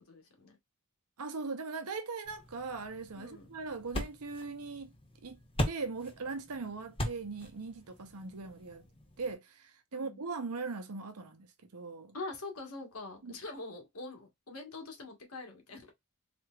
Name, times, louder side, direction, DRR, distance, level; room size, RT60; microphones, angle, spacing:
voice 1, 0.1-0.6 3.1-3.5 9.9-10.2 12.1-15.9, left 3 dB, 80° left, 1.4 m, -44 dB
voice 2, 1.2-4.9 5.2-5.4 5.6-8.8 9.2-11.5 11.7-12.2 13.2-13.4, right 4 dB, 90° right, 0.8 m, -40 dB
sound 1, 2.2-9.3, left 1 dB, 25° left, 1.0 m, -41 dB
4.2 x 3.4 x 2.3 m
head